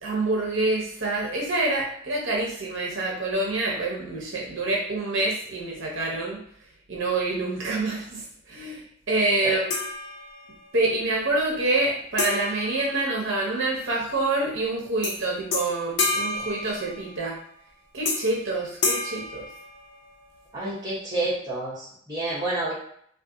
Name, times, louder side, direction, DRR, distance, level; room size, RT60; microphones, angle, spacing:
voice 1, 0.0-6.4 6.9-8.8 9.1-9.7 10.7-17.4 17.9-19.4, right 2 dB, 65° right, -3 dB, 0.7 m, -26 dB
sound 1, 9.7-10.7 12.2-13.7 15.0-15.2 15.5-17.3 18.0-18.4 18.8-20.2, left 3 dB, 55° left, 0.5 m, -30 dB
voice 2, 20.5-22.7, right 2 dB, 20° right, -8 dB, 1.0 m, -29 dB
2.5 x 2.4 x 3.6 m, 0.65 s
head